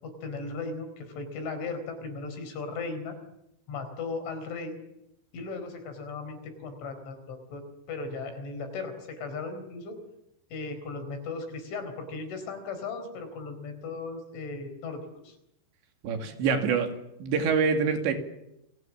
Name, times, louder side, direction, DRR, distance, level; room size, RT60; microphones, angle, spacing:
voice 1, 0.0-3.2 3.7-4.8 5.3-10.0 10.5-15.4, left 3 dB, 90° left, 7 dB, 6.9 m, -37 dB
voice 2, 16.0-16.9 17.2-18.1, right 5 dB, 75° right, 5 dB, 4.8 m, -25 dB
29.5 x 22.5 x 7.3 m, 0.86 s
omnidirectional pair, 5.3 m